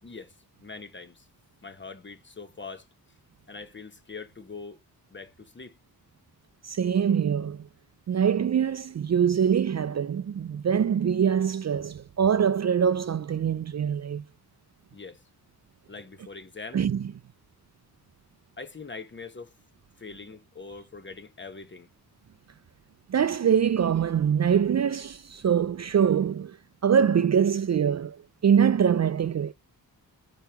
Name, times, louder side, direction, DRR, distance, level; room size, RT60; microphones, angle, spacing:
voice 1, 0.0-1.3 1.6-2.9 3.5-4.8 5.1-5.8 14.9-15.2 15.9-16.8 18.6-19.5 20.0-21.9, left 4 dB, 30° left, 1.1 m, -43 dB
voice 2, 6.6-7.6 8.1-14.2 16.7-17.1 23.1-26.6 26.8-29.5, right 8 dB, 45° right, 0.5 m, -24 dB
8.2 x 3.1 x 4.6 m
wide cardioid pair, 120°, 38 cm